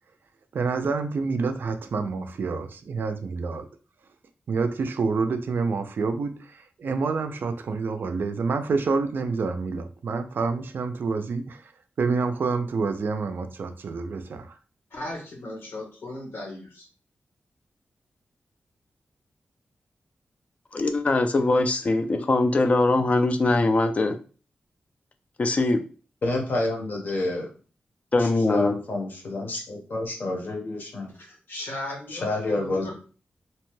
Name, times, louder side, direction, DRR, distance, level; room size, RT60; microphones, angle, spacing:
voice 1, 0.5-3.7 4.5-11.6 12.0-14.5, right 4 dB, 60° right, 9 dB, 0.3 m, -28 dB
voice 2, 14.9-16.8 31.5-32.9, left 1 dB, 80° left, 0 dB, 1.2 m, -36 dB
voice 3, 20.7-24.2 25.4-25.8 28.1-28.7, left 2 dB, 35° left, 7 dB, 0.3 m, -22 dB
voice 4, 26.2-27.5 28.2-31.1 32.1-32.9, left 2 dB, 55° left, 1 dB, 0.8 m, -29 dB
2.7 x 2.2 x 3.0 m, 0.37 s
wide cardioid pair, 160°, 4 cm